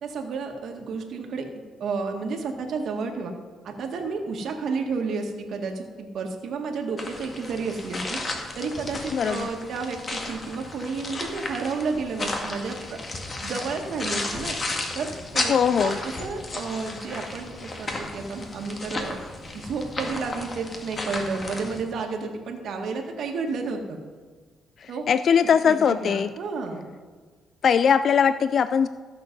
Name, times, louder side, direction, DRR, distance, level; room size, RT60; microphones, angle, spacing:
voice 1, 0.0-1.5 1.8-3.3 3.6-8.2 8.6-13.0 13.4-14.6 15.0-19.2 19.5-24.0 24.9-25.1 25.7-26.9, right 4 dB, 65° right, 3 dB, 1.7 m, -31 dB
sound 1, 7.0-21.8, left 2 dB, 35° left, 1.8 m, -33 dB
voice 2, 9.1-9.5 15.5-16.0 24.8-26.3 27.6-28.9, left 7 dB, 55° left, 13 dB, 0.3 m, -20 dB
14.5 x 6.8 x 5.3 m, 1.5 s
cardioid pair, 90°, 0 cm